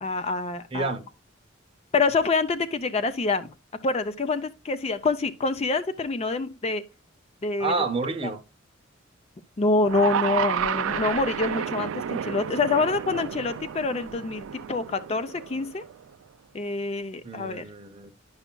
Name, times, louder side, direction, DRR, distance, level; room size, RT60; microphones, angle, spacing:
voice 1, 0.0-0.9 1.9-3.5 3.8-6.8 7.4-7.7 8.2-8.3 9.6-15.8 16.5-17.7, left 3 dB, 30° left, 0.4 m, -26 dB
voice 2, 0.7-1.0 7.6-8.4 17.2-18.1, right 3 dB, 25° right, 0.7 m, -29 dB
sound 1, 9.8-16.1, right 8 dB, 85° right, 0.4 m, -31 dB
9.9 x 5.6 x 2.2 m
head